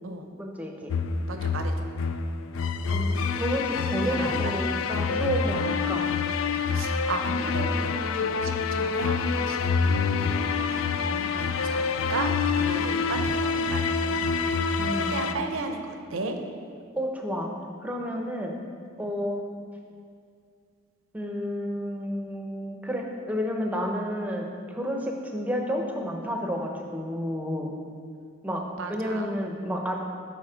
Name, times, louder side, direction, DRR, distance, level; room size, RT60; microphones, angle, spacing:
voice 1, 0.4-1.0 2.9-6.1 14.8-15.4 17.0-17.5 17.8-18.5 19.0-19.4 21.1-27.7 28.4-28.6 28.9-30.0, equal, 10° right, 1 dB, 0.7 m, -31 dB
sound 1, 0.9-15.3, left 5 dB, 85° left, 0.4 m, -27 dB
voice 2, 1.1-1.7 4.0-4.5 4.9-5.2 6.7-9.6 9.9-14.5 14.9-16.4 19.0-19.1 28.5-29.4, right 3 dB, 90° right, 5 dB, 0.7 m, -35 dB
8.7 x 4.1 x 5.0 m, 2.2 s
head